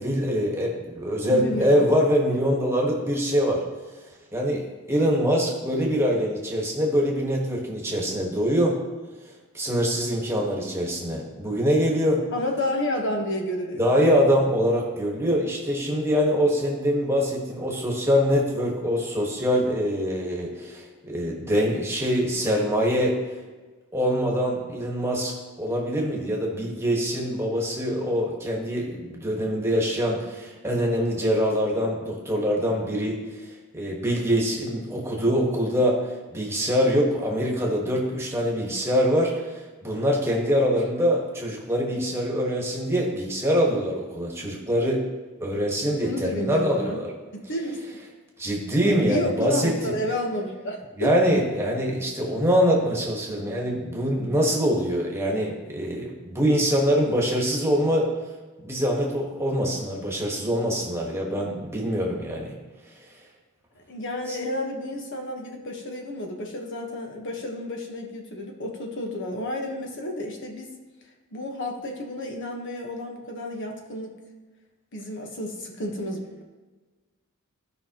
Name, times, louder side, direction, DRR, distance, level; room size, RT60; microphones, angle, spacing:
voice 1, 0.0-3.6 4.3-8.8 9.5-12.2 13.8-23.2 23.9-36.0 36.3-45.0 45.4-47.1 48.4-49.9 51.0-58.1 58.6-62.6 64.3-64.4, equal, 10° right, -2 dB, 1.5 m, -24 dB
voice 2, 1.2-1.9 12.3-13.9 46.0-47.0 47.3-47.8 49.1-51.1 63.8-70.7 71.3-74.2 74.9-76.4, left 1 dB, 60° left, 1 dB, 1.3 m, -31 dB
15.5 x 5.4 x 3.0 m, 1.3 s
head